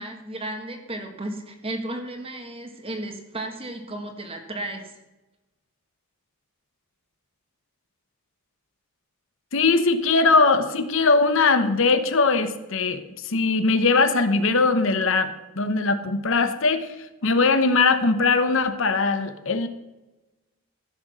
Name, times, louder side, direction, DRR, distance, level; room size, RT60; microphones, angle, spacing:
voice 1, 0.0-4.9, right 1 dB, 25° right, 5 dB, 1.5 m, -34 dB
voice 2, 9.5-16.9 17.2-19.7, left 3 dB, 60° left, 10 dB, 0.9 m, -20 dB
15.0 x 6.5 x 6.3 m, 1.1 s
head